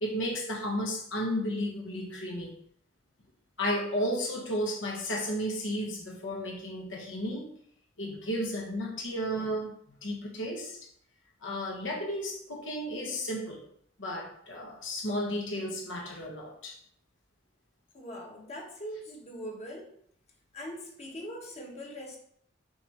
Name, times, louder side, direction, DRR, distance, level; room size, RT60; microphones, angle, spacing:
voice 1, 0.0-2.5 3.6-7.5 8.0-9.7 10.0-10.8 11.4-13.6 14.0-16.8, equal, 70° left, 0 dB, 1.4 m, -33 dB
voice 2, 17.9-19.9 20.5-22.2, equal, 35° left, 0 dB, 1.3 m, -41 dB
6.9 x 3.2 x 5.6 m, 0.66 s
head